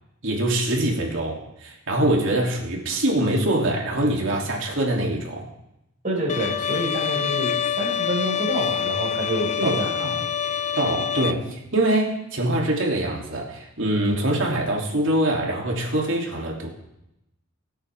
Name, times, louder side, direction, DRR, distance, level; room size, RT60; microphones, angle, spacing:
voice 1, 0.2-5.5 9.6-10.2 10.8-16.7, right 1 dB, 65° right, -2 dB, 3.1 m, -24 dB
voice 2, 6.0-10.0, right 1 dB, 40° right, -3 dB, 5.8 m, -27 dB
Bowed string instrument, 6.3-11.3, left 8 dB, 35° left, 0.4 m, -26 dB
23.0 x 8.9 x 3.7 m, 0.87 s
head